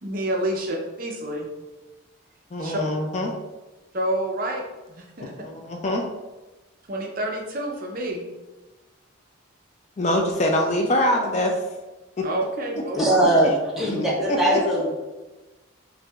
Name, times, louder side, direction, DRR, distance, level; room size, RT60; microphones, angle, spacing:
voice 1, 0.0-1.5 2.6-2.8 3.9-4.6 4.9-5.3 6.9-8.2 12.2-13.0, right 1 dB, 45° right, 0 dB, 0.5 m, -28 dB
voice 2, 2.5-3.3 5.2-6.0 10.0-11.6 12.2-12.3 13.0-13.1 13.4-13.5 13.9-14.6, left 1 dB, 35° left, 2 dB, 0.4 m, -24 dB
voice 3, 12.9-13.5 13.8-14.9, right 1 dB, ahead, -5 dB, 0.8 m, -20 dB
5.8 x 2.6 x 2.3 m, 1.1 s
head